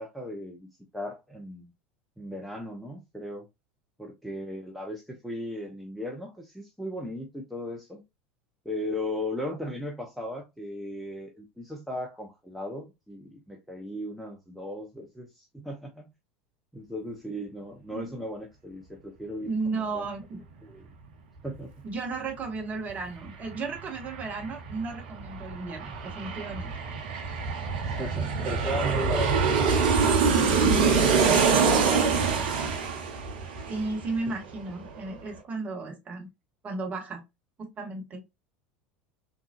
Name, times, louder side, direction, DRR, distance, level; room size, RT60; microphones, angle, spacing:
voice 1, 0.0-1.7 2.2-3.5 4.0-8.0 8.6-16.1 16.7-20.1 20.6-20.9 21.4-21.7 27.8-30.6 34.3-34.4, left 1 dB, ahead, 0.7 m, -37 dB
voice 2, 19.4-20.4 21.8-26.7 33.7-36.3 36.6-37.2 37.6-38.2, right 3 dB, 30° right, 1.3 m, -34 dB
Aircraft, 22.9-23.0 23.3-34.6 34.9-35.0, right 5 dB, 60° right, 0.7 m, -25 dB
3.6 x 2.8 x 2.4 m
figure-of-eight pair, 75°, 6 cm